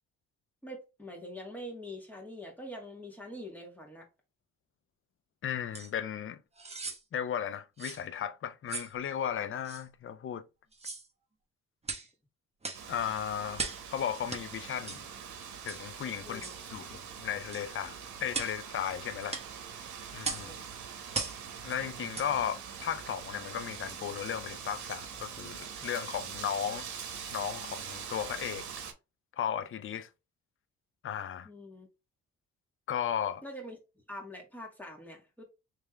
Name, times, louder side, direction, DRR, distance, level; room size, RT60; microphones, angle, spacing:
voice 1, 0.6-4.1 16.2-16.5 20.3-20.7 31.4-31.9 33.4-33.8 34.1-35.4, equal, 5° left, 2.0 m, -44 dB
voice 2, 5.4-6.4 7.1-10.5 12.9-15.0 15.6-18.0 18.2-19.4 20.1-20.5 21.6-26.9 27.3-28.7 29.4-30.1 31.0-31.5 32.9-33.4, left 9 dB, 45° left, 0.6 m, -35 dB
sound 1, 5.7-5.9 6.6-7.0 7.8-8.0 8.7-8.9 9.6-9.8 10.7-11.1 11.8-12.1 12.6-12.9 13.5-13.9 14.3-14.4 14.9-15.0 15.7-15.9 16.4-16.6 17.5-17.7 18.3-18.6 19.3-19.5 20.2-20.5 21.1-21.4 22.1-22.3 22.8-22.9, right 4 dB, 20° right, 1.1 m, -37 dB
Wind, 12.7-28.9, right 7 dB, 70° right, 1.0 m, -43 dB
3.4 x 3.4 x 3.3 m
cardioid pair, 90°, 30 cm